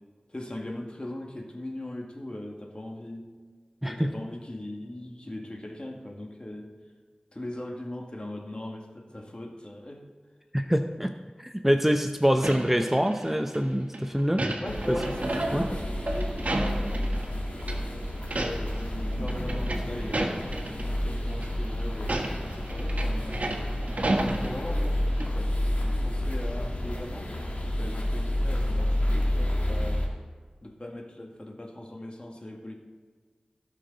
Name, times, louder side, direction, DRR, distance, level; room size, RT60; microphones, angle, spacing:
voice 1, 0.3-3.4 3.8-6.7 7.3-10.1 14.6-17.0 18.3-23.5 24.2-27.3 27.8-30.1 30.6-32.7, left 1 dB, 40° left, 1 dB, 1.9 m, -39 dB
voice 2, 10.5-11.1 11.4-14.4 14.9-15.0 15.5-15.6, equal, 10° right, 6 dB, 0.6 m, -25 dB
sound 1, 12.4-13.6 13.9-17.3 17.6-17.8 18.2-18.8 19.1-20.8 21.3-21.5 22.0-24.9 25.2-25.3, right 1 dB, 65° right, 1.5 m, -31 dB
sound 2, 14.7-30.1, left 1 dB, 65° left, 2.2 m, -30 dB
16.5 x 6.7 x 3.9 m, 1.6 s
wide cardioid pair, 40°, 3 cm